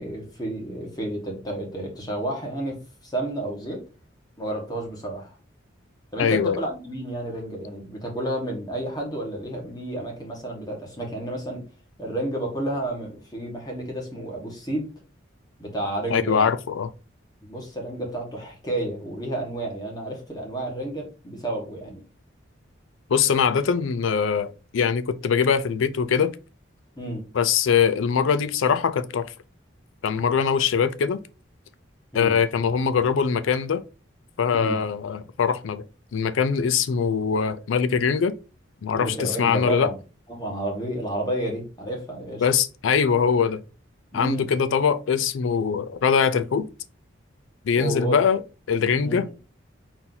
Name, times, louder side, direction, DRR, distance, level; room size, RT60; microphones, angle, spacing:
voice 1, 0.0-3.8 4.4-5.3 6.1-11.6 12.0-14.9 15.6-16.5 17.4-22.0 27.0-27.3 32.1-32.4 34.5-34.8 38.9-40.0 40.3-42.5 44.1-44.5 47.7-48.2 49.0-49.2, right 1 dB, 20° left, 1.3 m, -31 dB
voice 2, 6.2-6.6 16.1-16.9 23.1-26.4 27.3-29.3 30.0-31.2 32.1-33.8 34.4-35.8 36.1-38.3 38.8-39.9 42.4-43.6 44.1-46.7 47.6-48.4 48.7-49.3, left 6 dB, 80° left, 0.4 m, -22 dB
4.3 x 2.7 x 3.8 m
head